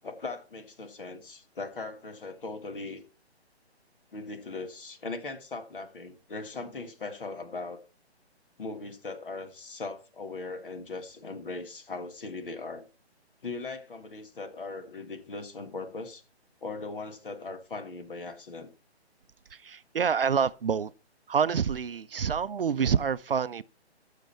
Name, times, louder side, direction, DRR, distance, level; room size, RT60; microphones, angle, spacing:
voice 1, 0.0-3.0 4.1-7.8 8.6-12.8 13.4-16.2 16.6-18.7, left 3 dB, 50° left, 1.7 m, -39 dB
voice 2, 19.5-20.9 21.3-23.6, right 7 dB, 55° right, 0.5 m, -27 dB
14.5 x 6.6 x 4.3 m
hypercardioid pair, 175°, 33 cm